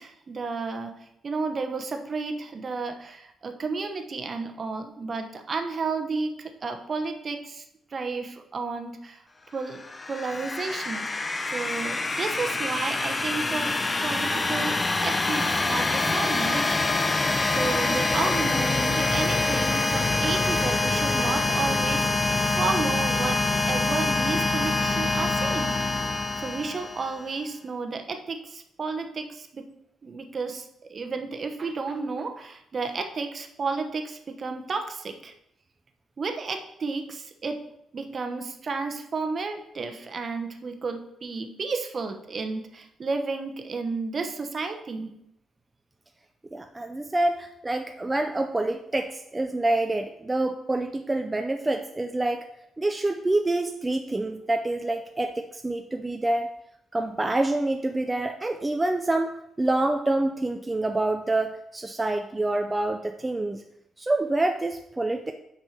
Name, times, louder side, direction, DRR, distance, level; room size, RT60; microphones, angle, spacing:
voice 1, 0.0-7.6 7.9-9.2 9.5-9.8 10.1-11.0 11.5-13.7 14.0-17.1 17.5-25.8 26.4-29.7 30.0-35.3 36.2-37.6 37.9-45.1, right 4 dB, 45° right, 5 dB, 1.0 m, -32 dB
sound 1, 9.7-27.3, left 3 dB, 30° left, 0.7 m, -25 dB
voice 2, 46.5-52.5 52.8-56.5 56.9-63.6 64.0-65.3, right 2 dB, 20° right, 5 dB, 0.5 m, -27 dB
6.0 x 5.5 x 6.7 m, 0.79 s
cardioid pair, 80°, 0 cm